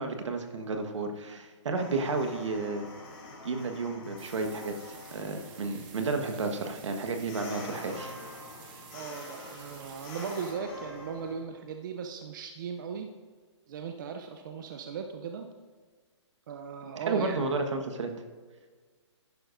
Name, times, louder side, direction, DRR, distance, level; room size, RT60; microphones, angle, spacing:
voice 1, 0.0-2.8 3.4-8.1 17.1-18.1, right 3 dB, 75° right, 5 dB, 1.4 m, -32 dB
sound 1, 1.7-11.4, left 2 dB, 30° left, 2.6 m, -46 dB
sound 2, 4.2-10.5, right 6 dB, 25° right, 1.3 m, -51 dB
voice 2, 8.9-13.1 13.7-15.5 16.5-17.4, right 6 dB, 40° right, 5 dB, 0.6 m, -38 dB
11.0 x 11.0 x 2.6 m, 1.5 s
hypercardioid pair, 160°, 16 cm